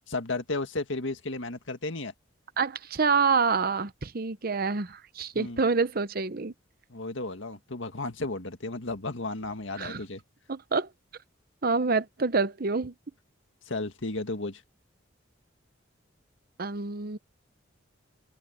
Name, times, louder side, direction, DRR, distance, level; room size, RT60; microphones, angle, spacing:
voice 1, 0.1-2.1 5.3-5.6 6.9-10.2 13.7-14.6, left 2 dB, 75° left, 2.0 m, -33 dB
voice 2, 2.6-6.5 9.8-10.0 10.5-10.9 11.6-12.9 16.6-17.2, right 4 dB, 50° right, 0.8 m, -27 dB
open air
head